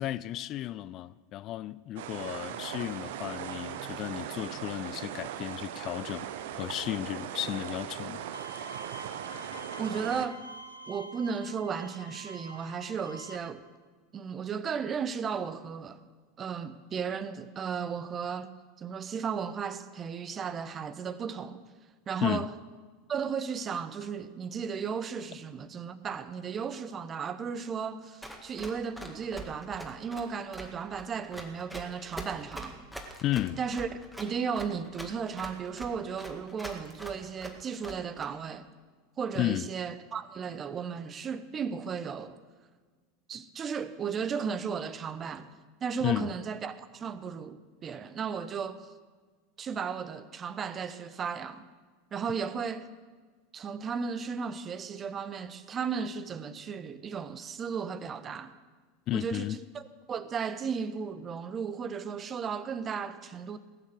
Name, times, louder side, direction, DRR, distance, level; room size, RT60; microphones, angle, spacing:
voice 1, 0.0-6.3 6.6-8.2 22.2-22.5 33.2-33.6 39.4-39.7 46.0-46.3 59.1-59.6, left 14 dB, 45° left, 0.3 m, -33 dB
sound 1, 2.0-10.3, right 10 dB, 60° right, 0.8 m, -39 dB
Bowed string instrument, 8.3-13.4, equal, 85° left, 1.0 m, -46 dB
voice 2, 9.8-10.4 10.9-13.6 14.1-16.0 16.4-18.5 18.8-21.6 22.1-22.5 23.1-33.2 33.6-33.9 34.2-38.7 39.2-42.4 43.3-45.5 45.8-48.8 49.6-51.7 52.1-52.9 53.5-58.5 59.1-63.6, right 6 dB, 30° right, 0.9 m, -35 dB
Run, 28.2-38.3, right 1 dB, ahead, 1.9 m, -43 dB
18.0 x 7.3 x 7.8 m
figure-of-eight pair, 80°, 0 cm